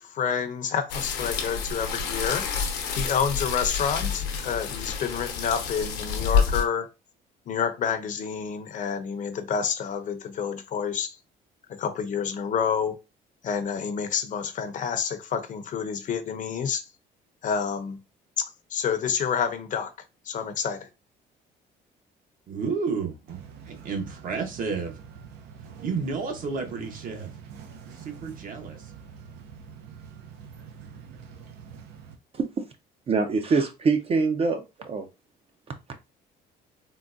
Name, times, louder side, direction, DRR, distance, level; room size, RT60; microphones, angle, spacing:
voice 1, 0.0-2.5 2.9-6.9 7.5-11.2 11.8-13.0 13.4-16.8 17.4-18.0 18.7-19.9 20.3-20.9, left 7 dB, 50° left, 0.6 m, -28 dB
sound 1, 0.9-6.6, left 6 dB, 85° left, 0.8 m, -28 dB
voice 2, 22.5-23.4 23.6-25.0 25.8-27.3 27.9-28.9, right 5 dB, 55° right, 0.9 m, -31 dB
sound 2, 23.3-32.2, right 6 dB, 85° right, 0.6 m, -45 dB
voice 3, 33.1-35.1, right 4 dB, 35° right, 0.4 m, -24 dB
3.7 x 2.2 x 2.5 m
cardioid pair, 110°, 17 cm